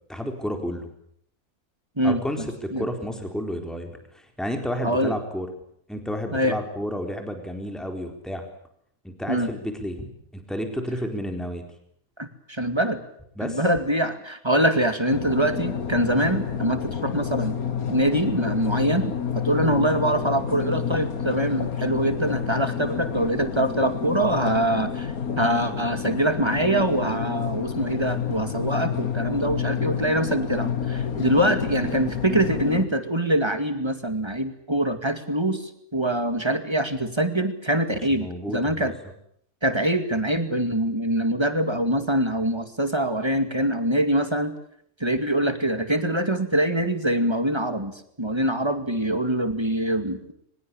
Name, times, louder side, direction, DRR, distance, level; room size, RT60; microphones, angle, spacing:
voice 1, 0.1-0.9 2.0-5.5 5.9-8.4 9.0-11.6 13.4-13.6 38.1-38.9, equal, ahead, 5 dB, 4.0 m, -31 dB
voice 2, 2.0-2.9 4.8-5.1 6.3-6.6 9.3-9.5 12.2-13.0 13.4-17.6 17.9-38.9 39.6-44.5 45.0-50.3, right 1 dB, 20° right, 9 dB, 2.3 m, -24 dB
sound 1, 15.1-32.9, left 7 dB, 90° left, 2.2 m, -29 dB
24.0 x 21.0 x 8.6 m, 0.69 s
omnidirectional pair, 1.5 m